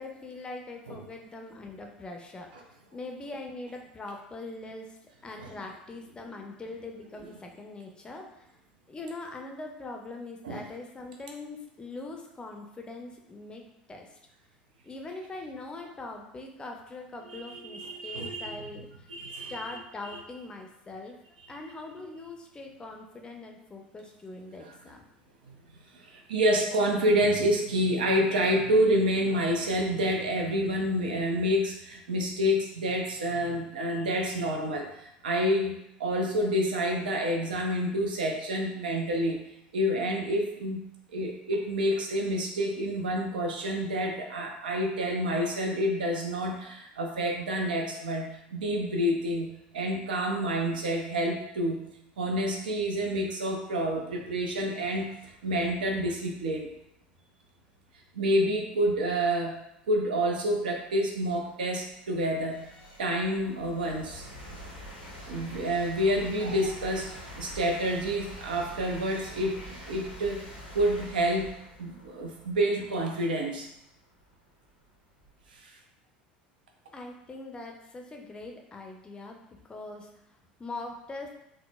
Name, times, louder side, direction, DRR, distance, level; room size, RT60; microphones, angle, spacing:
voice 1, 0.0-5.0 5.2-8.5 8.9-13.6 13.9-14.2 14.8-21.2 21.5-25.0 76.9-80.1 80.6-81.3, left 2 dB, 20° left, 2 dB, 0.5 m, -42 dB
voice 2, 17.3-18.6 19.1-19.8 24.6-24.7 25.5-25.6 25.9-39.4 39.7-40.8 41.1-51.9 52.2-56.7 58.1-59.6 59.9-62.6 63.0-64.3 65.3-70.4 70.7-71.5 71.8-73.7 75.6-75.7, equal, 70° right, 2 dB, 0.4 m, -28 dB
sound 1, 60.1-60.2 60.8-75.6, equal, 90° left, 0.6 m, -46 dB
3.7 x 2.0 x 2.2 m, 0.78 s
figure-of-eight pair, 70°, 5 cm